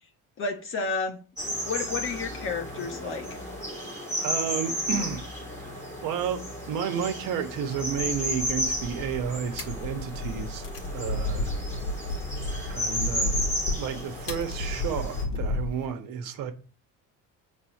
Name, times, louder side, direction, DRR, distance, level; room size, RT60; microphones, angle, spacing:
voice 1, 0.4-1.2 1.6-3.3, left 4 dB, 35° left, 1.4 m, -31 dB
sound 1, 1.4-15.2, equal, 5° left, 3.1 m, -33 dB
voice 2, 4.2-5.2 5.6-5.7 6.0-11.6 12.7-13.5 13.7-16.5, right 7 dB, 65° right, 1.3 m, -32 dB
sound 2, 8.0-15.9, left 2 dB, 65° left, 1.7 m, -33 dB
7.5 x 4.1 x 6.4 m
cardioid pair, 175°, 35 cm